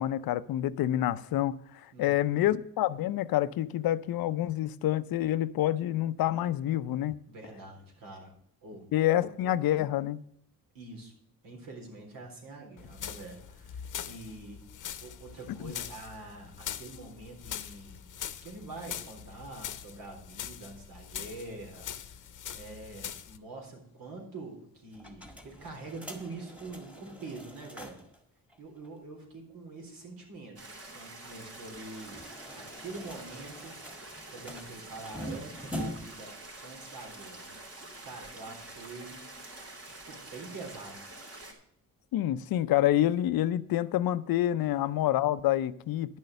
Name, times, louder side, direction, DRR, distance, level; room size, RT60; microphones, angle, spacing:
voice 1, 0.0-7.2 8.9-10.2 15.6-15.7 42.1-46.2, left 13 dB, 85° left, 0.6 m, -27 dB
voice 2, 1.9-2.5 7.3-8.3 8.6-8.9 9.2-9.3 10.7-11.1 11.4-14.6 15.0-18.0 18.4-28.0 28.6-32.2 32.6-34.0 34.3-36.3 36.6-37.5 38.0-39.3 39.8-41.0 44.6-44.7, right 3 dB, 75° right, 3.9 m, -45 dB
sound 1, 12.8-23.4, left 9 dB, 60° left, 0.9 m, -42 dB
sound 2, 24.9-28.2 28.5-28.6 28.8-28.9 31.7-36.3, equal, 5° right, 1.7 m, -43 dB
sound 3, 30.6-41.5, right 2 dB, 45° right, 3.3 m, -47 dB
11.0 x 6.4 x 6.6 m
cardioid pair, 110°, 34 cm